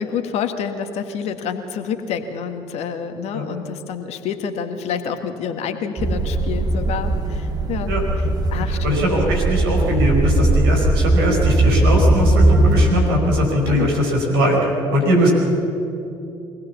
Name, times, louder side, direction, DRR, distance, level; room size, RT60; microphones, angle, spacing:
voice 1, 0.0-7.9 8.5-9.0 13.7-13.9, left 7 dB, 60° left, 8 dB, 1.8 m, -28 dB
sound 1, 6.0-12.9, right 1 dB, 35° right, 3.1 m, -18 dB
voice 2, 8.8-14.6 14.9-15.3, equal, 75° right, -1 dB, 5.2 m, -20 dB
23.5 x 18.5 x 7.2 m, 2.8 s
figure-of-eight pair, 55°, 13 cm